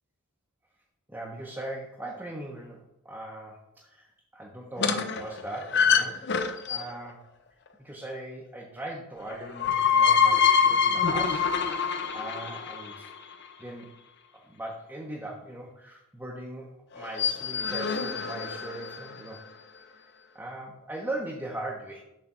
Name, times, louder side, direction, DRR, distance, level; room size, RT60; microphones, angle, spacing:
voice 1, 1.1-6.3 6.7-7.3 7.8-11.5 12.1-13.1 13.6-13.9 14.5-16.7 16.9-19.4 20.3-22.0, right 1 dB, 10° right, -3 dB, 0.8 m, -39 dB
sound 1, 4.8-7.1 9.3-13.3 17.0-19.2, left 6 dB, 50° left, 0.5 m, -25 dB
7.6 x 3.3 x 6.0 m, 0.85 s
head